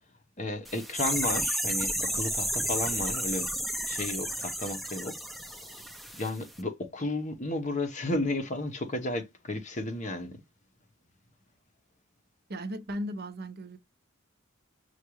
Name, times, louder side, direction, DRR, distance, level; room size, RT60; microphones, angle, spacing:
voice 1, 0.4-3.5 3.9-5.2 5.5-5.8 6.1-10.4, left 2 dB, 35° left, 0.8 m, -33 dB
sound 1, 0.6-6.3 6.5-6.6, right 1 dB, ahead, 0.6 m, -32 dB
voice 2, 12.5-13.8, equal, 50° right, 0.6 m, -36 dB
6.3 x 2.3 x 3.0 m
head